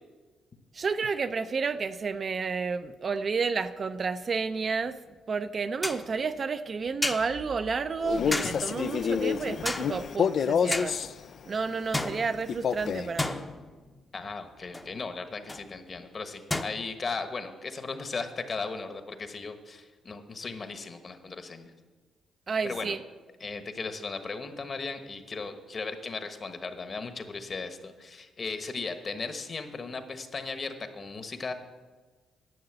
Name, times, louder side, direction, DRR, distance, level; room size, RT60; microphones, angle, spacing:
voice 1, 0.7-5.0 5.3-11.0 11.5-13.5 22.5-23.0, right 5 dB, 40° right, 10 dB, 0.5 m, -31 dB
sound 1, 4.6-4.7 5.8-6.1 7.0-7.4 8.3-8.8 9.7-10.2 10.7-11.1 11.9-12.7 13.2-14.0 14.7-14.9 15.5-15.7 16.5-16.6, left 2 dB, 15° left, 0.8 m, -33 dB
Male speech man speaking, 8.0-11.1 12.5-13.1, left 7 dB, 55° left, 0.4 m, -28 dB
voice 2, 14.1-21.7 22.6-23.0 23.4-31.5, left 4 dB, 40° left, 8 dB, 1.2 m, -37 dB
11.0 x 6.6 x 8.0 m, 1.3 s
cardioid pair, 90°, 0 cm